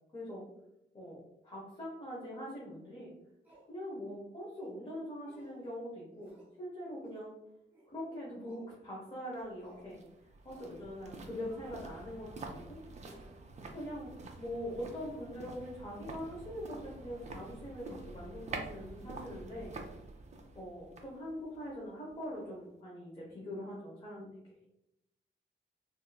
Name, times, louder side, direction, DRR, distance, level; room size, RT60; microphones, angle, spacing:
voice 1, 0.1-0.4 0.9-3.1 3.7-6.3 6.6-7.3 7.9-10.0 10.4-12.8 13.7-19.8 20.5-24.4, equal, 30° left, -5 dB, 0.8 m, -43 dB
sound 1, 2.7-2.8 3.4-3.7 4.5-4.8 5.2-5.7 6.2-6.5 7.0-7.3 7.7-7.9 8.4-8.7 9.6-9.9 10.5-10.8 11.3-12.6 13.0-13.3 13.8-14.0 14.5-14.6 15.1-15.3 15.9-16.0 16.7-17.8 18.0-18.2, right 1 dB, 10° right, 1.1 m, -61 dB
sound 2, 9.3-22.5 22.8-22.9, right 3 dB, 40° right, 0.4 m, -48 dB
3.6 x 2.5 x 2.2 m, 0.87 s
wide cardioid pair, 150°, 19 cm